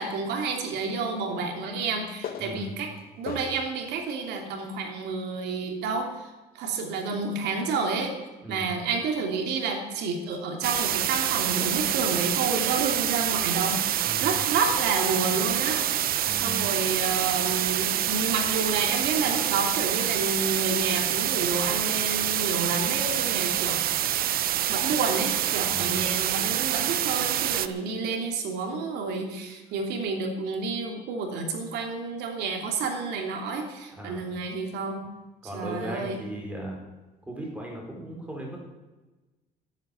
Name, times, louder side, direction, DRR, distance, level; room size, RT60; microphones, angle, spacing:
voice 1, 0.0-2.9 3.2-8.1 8.5-15.9 16.4-23.8 24.7-35.0 35.5-36.2, right 4 dB, 85° right, 3 dB, 3.0 m, -30 dB
sound 1, 0.7-3.8 4.4-4.5 5.9-6.0, left 9 dB, 60° left, 1.3 m, -41 dB
voice 2, 2.4-2.8 8.4-8.8 14.0-14.4 16.2-16.7 25.7-26.0 33.9-34.3 35.4-36.8 37.3-38.6, right 1 dB, 10° right, -1 dB, 4.3 m, -37 dB
sound 2, 10.6-27.7, right 12 dB, 60° right, 0.8 m, -26 dB
12.0 x 9.2 x 9.1 m, 1.1 s
cardioid pair, 110°, 17 cm